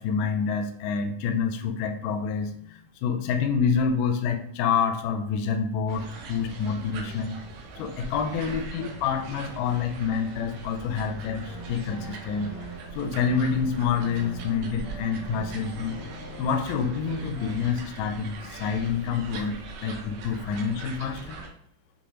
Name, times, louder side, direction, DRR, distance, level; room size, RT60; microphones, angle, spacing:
voice 1, 0.0-7.4 7.8-12.5 12.9-16.0 16.4-21.4, left 6 dB, 90° left, 5 dB, 1.6 m, -27 dB
sound 1, 5.9-21.5, right 3 dB, 80° right, 1.5 m, -41 dB
sound 2, 11.2-17.5, right 1 dB, 60° left, 1.6 m, -43 dB
6.7 x 2.4 x 3.0 m, 0.64 s
omnidirectional pair, 3.9 m